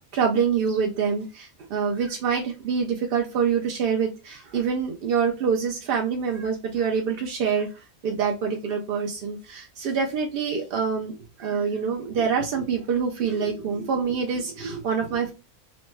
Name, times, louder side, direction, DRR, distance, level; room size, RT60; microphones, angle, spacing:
voice 1, 0.1-7.7 8.0-15.3, right 6 dB, 65° right, 0.5 m, -26 dB
3.0 x 2.0 x 3.2 m
omnidirectional pair, 1.5 m